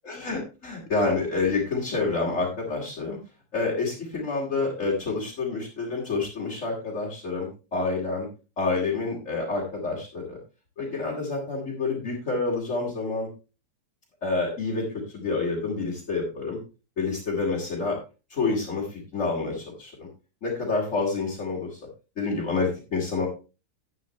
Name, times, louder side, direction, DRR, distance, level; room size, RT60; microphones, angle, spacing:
voice 1, 0.0-3.2 3.5-8.3 8.6-10.4 10.8-13.3 14.2-16.6 17.0-18.0 18.3-20.1 20.4-21.8 22.2-23.3, left 3 dB, 45° left, -5 dB, 2.9 m, -28 dB
10.5 x 9.0 x 3.2 m, 0.31 s
omnidirectional pair, 1.8 m